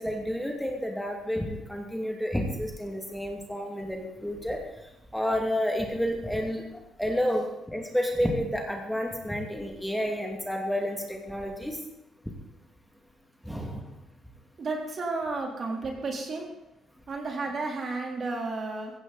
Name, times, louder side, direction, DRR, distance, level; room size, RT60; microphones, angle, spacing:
voice 1, 0.0-4.6 5.1-6.6 7.0-11.8 13.4-13.9, equal, ahead, 1 dB, 2.5 m, -30 dB
voice 2, 14.6-16.5 17.1-18.9, right 3 dB, 45° right, 1 dB, 3.6 m, -32 dB
16.0 x 15.5 x 4.2 m, 0.90 s
cardioid pair, 90°, 0 cm